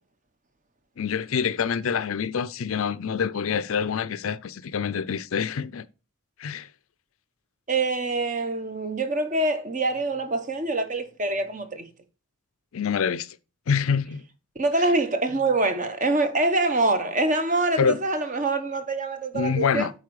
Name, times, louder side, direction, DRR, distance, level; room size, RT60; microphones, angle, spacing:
voice 1, 1.0-5.8 6.4-6.7 12.7-13.4 13.7-14.2 17.8-18.0 19.3-19.9, left 6 dB, 70° left, 0.5 m, -26 dB
voice 2, 7.7-11.9 14.6-19.9, right 2 dB, 35° right, 0.9 m, -25 dB
8.2 x 4.4 x 4.7 m
head